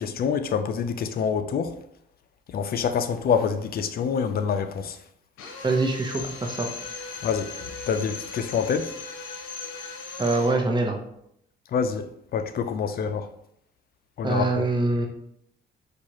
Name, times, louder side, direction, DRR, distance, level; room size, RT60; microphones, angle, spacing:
voice 1, 0.0-1.7 2.5-5.0 7.2-8.9 11.7-12.1 12.3-13.3 14.2-14.7, left 6 dB, 50° left, 0.4 m, -26 dB
Drill, 5.4-10.7, left 4 dB, 85° left, 0.7 m, -38 dB
voice 2, 5.6-6.7 10.2-11.0 14.2-15.1, right 2 dB, 20° right, 0.8 m, -24 dB
4.5 x 2.4 x 3.0 m
cardioid pair, 90°, 20 cm